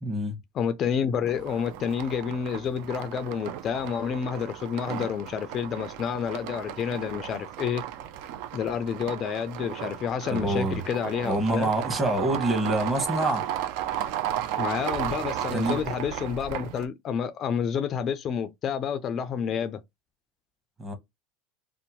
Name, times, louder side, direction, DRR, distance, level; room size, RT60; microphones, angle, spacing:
voice 1, 0.0-0.4 10.3-10.8 11.2-13.4 15.5-15.8 20.8-20.9, right 1 dB, 15° right, 0.9 m, -26 dB
voice 2, 0.5-7.8 8.5-11.7 14.6-19.8, left 7 dB, 40° left, 0.3 m, -29 dB
sound 1, 1.3-16.9, right 10 dB, 65° right, 0.3 m, -35 dB
2.7 x 2.1 x 2.8 m
supercardioid pair, 120°, 0 cm